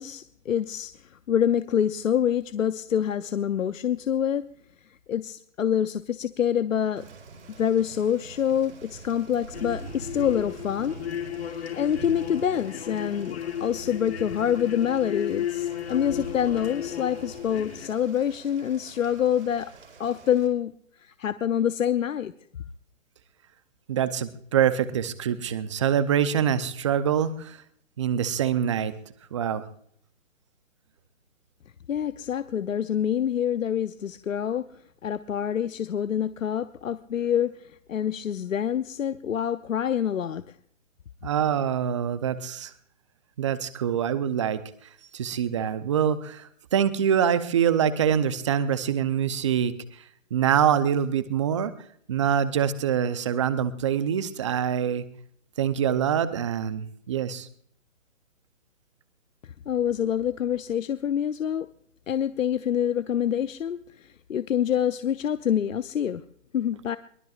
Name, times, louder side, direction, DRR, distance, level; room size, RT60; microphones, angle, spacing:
voice 1, 0.0-4.5 4.9-7.0 7.6-11.0 11.5-19.7 20.0-20.7 21.0-22.3 31.9-34.7 35.0-40.4 59.7-61.7 62.1-66.2 66.5-67.0, left 9 dB, 75° left, 13 dB, 0.8 m, -26 dB
Thunder / Rain, 7.0-20.5, right 4 dB, 55° right, 4.5 m, -45 dB
sound 1, 9.5-17.9, left 10 dB, 50° left, 1.5 m, -34 dB
voice 2, 23.9-27.6 28.0-28.9 29.3-29.6 41.2-42.7 43.4-44.6 45.1-50.0 50.3-51.7 52.1-55.0 55.6-57.5, right 8 dB, 25° right, 13 dB, 0.7 m, -25 dB
23.0 x 19.0 x 2.5 m, 0.65 s
hypercardioid pair, 155°, 39 cm